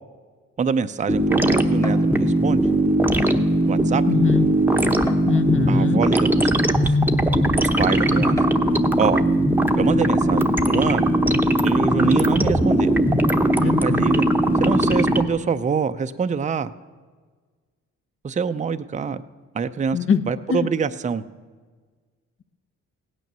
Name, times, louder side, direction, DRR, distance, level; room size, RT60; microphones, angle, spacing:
voice 1, 0.6-2.6 3.6-4.0 5.7-6.5 6.8-7.0 7.6-8.4 9.0-9.2 9.7-11.1 11.6-13.0 13.6-14.2 14.6-16.7 18.2-19.2 19.5-20.0 20.3-21.2, right 6 dB, 25° right, 10 dB, 0.6 m, -25 dB
sound 1, 1.1-15.3, right 1 dB, 5° right, 0.9 m, -19 dB
sound 2, 1.8-2.1 3.2-3.3 3.8-3.9 5.1-5.7 6.5-6.6 8.4-8.8, equal, 10° left, 1.4 m, -35 dB
voice 2, 4.1-4.4 5.3-6.0 12.0-12.1 13.6-14.1 19.9-20.2 20.5-20.7, left 7 dB, 45° left, 12 dB, 0.8 m, -22 dB
16.5 x 9.3 x 6.8 m, 1.5 s
cardioid pair, 90°, 30 cm